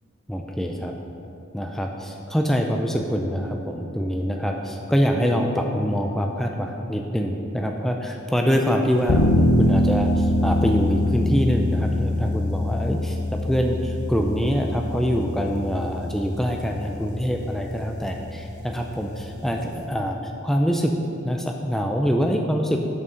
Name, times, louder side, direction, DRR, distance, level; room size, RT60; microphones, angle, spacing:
voice 1, 0.3-0.9 1.5-20.9 21.2-22.8, equal, ahead, 2 dB, 0.4 m, -24 dB
sound 1, 9.1-19.8, left 1 dB, 90° left, 0.8 m, -25 dB
7.3 x 6.4 x 5.6 m, 2.8 s
head